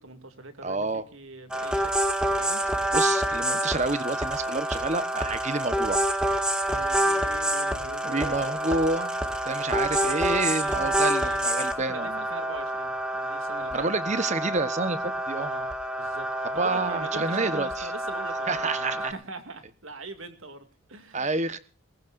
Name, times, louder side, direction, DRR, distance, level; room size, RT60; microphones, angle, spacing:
voice 1, 0.0-1.9 2.4-2.6 6.5-8.4 9.7-13.9 15.4-15.7 16.0-21.3, right 3 dB, 75° right, 2.4 m, -42 dB
voice 2, 0.6-1.0 2.9-6.0 8.0-9.1 9.4-12.3 13.7-15.5 16.6-17.9 18.5-19.1 21.1-21.6, right 3 dB, 35° right, 1.1 m, -28 dB
sound 1, 1.5-19.1, right 1 dB, 5° right, 1.5 m, -28 dB
21.5 x 19.5 x 2.6 m
head